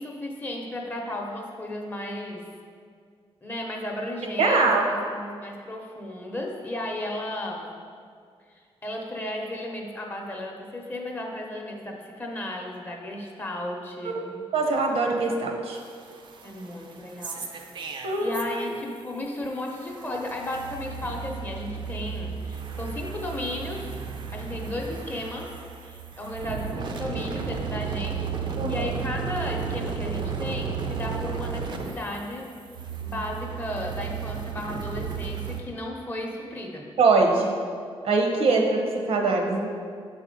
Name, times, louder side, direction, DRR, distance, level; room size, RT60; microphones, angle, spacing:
voice 1, 0.0-2.4 3.4-7.8 8.5-14.4 16.4-17.5 18.2-23.9 24.3-25.5 25.8-32.5 33.0-36.9, left 1 dB, 20° left, 0 dB, 0.7 m, -34 dB
voice 2, 4.4-4.9 14.0-14.2 14.5-15.8 18.0-18.3 28.6-28.8 37.0-37.5 38.0-39.7, right 3 dB, 75° right, 1 dB, 0.9 m, -22 dB
sound 1, 15.8-19.0 19.3-35.6, right 6 dB, 50° right, 0.5 m, -34 dB
6.9 x 4.2 x 5.2 m, 2.1 s
wide cardioid pair, 165°, 10 cm